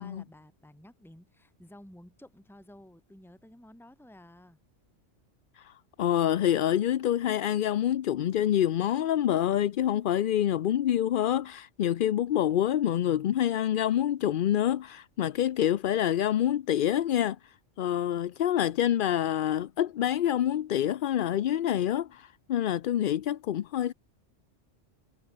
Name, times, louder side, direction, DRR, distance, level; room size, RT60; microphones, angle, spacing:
voice 1, 0.0-4.6, left 1 dB, ahead, 2.5 m, -52 dB
voice 2, 6.0-23.9, left 11 dB, 60° left, 0.6 m, -27 dB
omnidirectional pair, 1.2 m